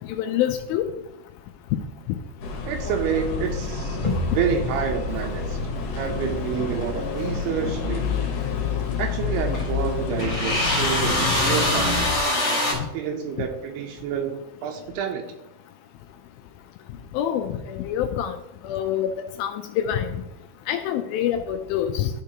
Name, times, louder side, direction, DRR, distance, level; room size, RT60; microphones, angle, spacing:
voice 1, 0.1-0.9 17.1-18.4 18.6-19.1 19.4-20.2 20.7-22.1, left 10 dB, 85° left, 6 dB, 2.2 m, -26 dB
sound 1, 2.4-12.2, left 5 dB, 65° left, 2.4 m, -28 dB
voice 2, 2.7-5.6 6.0-8.3 9.0-15.3, right 7 dB, 85° right, 3 dB, 2.8 m, -29 dB
sound 2, 4.0-4.8 6.8-6.9 7.3-7.4 9.0-9.1 9.5-9.6 10.2-12.7, left 1 dB, 15° left, 2.2 m, -24 dB
12.5 x 5.1 x 2.9 m, 0.88 s
omnidirectional pair, 4.6 m